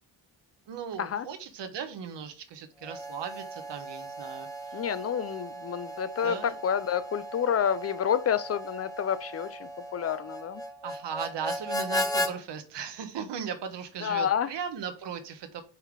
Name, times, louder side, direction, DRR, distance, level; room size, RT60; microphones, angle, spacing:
voice 1, 0.7-4.5 6.2-6.5 10.8-15.6, right 7 dB, 70° right, 1.2 m, -37 dB
Harmonica, 2.8-12.3, equal, 10° left, 0.7 m, -36 dB
voice 2, 4.7-10.6 14.0-14.5, left 8 dB, 35° left, 0.4 m, -29 dB
5.6 x 3.9 x 4.7 m
cardioid pair, 140°, 44 cm